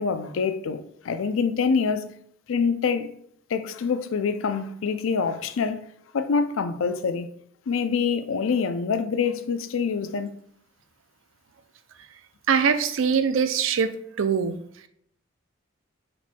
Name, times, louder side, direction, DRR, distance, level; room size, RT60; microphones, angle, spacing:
voice 1, 0.0-2.1 2.5-3.1 3.5-5.9 6.1-7.3 7.7-10.3, left 5 dB, 80° left, 0.4 m, -25 dB
voice 2, 12.5-13.9 14.2-14.6, right 6 dB, 75° right, 0.4 m, -22 dB
4.4 x 4.2 x 2.2 m
head